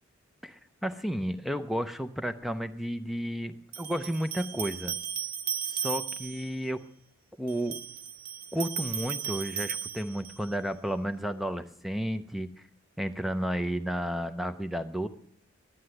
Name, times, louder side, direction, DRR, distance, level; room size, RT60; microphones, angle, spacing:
voice 1, 0.4-4.9 5.6-6.8 7.4-7.8 8.5-12.5 13.0-15.1, equal, ahead, 10 dB, 0.5 m, -32 dB
sound 1, 2.4-2.5 3.7-6.5 7.5-10.5, right 8 dB, 45° right, 0.7 m, -36 dB
15.0 x 11.5 x 7.8 m, 0.70 s
head